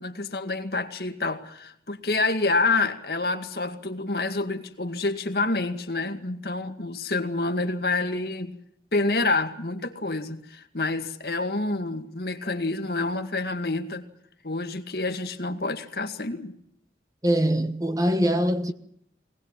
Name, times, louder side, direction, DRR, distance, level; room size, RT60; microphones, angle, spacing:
voice 1, 0.0-8.5 8.9-14.1 14.4-16.5, left 3 dB, 60° left, 2.1 m, -28 dB
voice 2, 17.2-18.7, equal, 20° right, 1.2 m, -23 dB
22.5 x 19.5 x 7.4 m
head